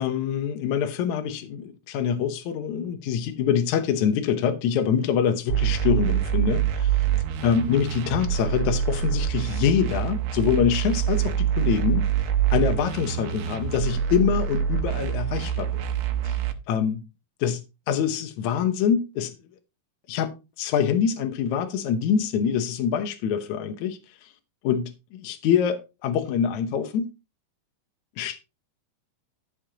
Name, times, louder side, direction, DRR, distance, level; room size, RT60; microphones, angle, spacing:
voice 1, 0.0-7.0 7.4-12.0 12.5-15.9 16.2-16.4 16.7-17.0 17.4-17.6 17.9-19.3 20.1-20.3 20.6-24.3 24.6-27.1 28.2-28.4, left 8 dB, 70° left, 1.9 m, -25 dB
sound 1, 5.5-16.5, right 9 dB, 75° right, 2.7 m, -25 dB
13.0 x 7.5 x 2.9 m
omnidirectional pair, 4.3 m